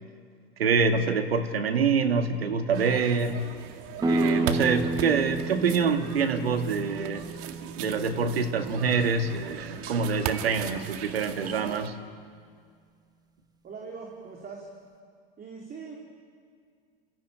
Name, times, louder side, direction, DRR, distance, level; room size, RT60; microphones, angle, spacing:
voice 1, 0.6-3.5 4.1-7.3 7.8-12.0, right 5 dB, 85° right, 7 dB, 1.9 m, -26 dB
sound 1, 2.7-11.9, right 9 dB, 50° right, 2.0 m, -39 dB
sound 2, 4.0-9.6, right 2 dB, 15° right, 1.4 m, -31 dB
voice 2, 13.6-14.7 15.4-16.0, right 5 dB, 30° right, -1 dB, 4.1 m, -41 dB
28.0 x 16.0 x 8.9 m, 2.1 s
hypercardioid pair, 95°, 29 cm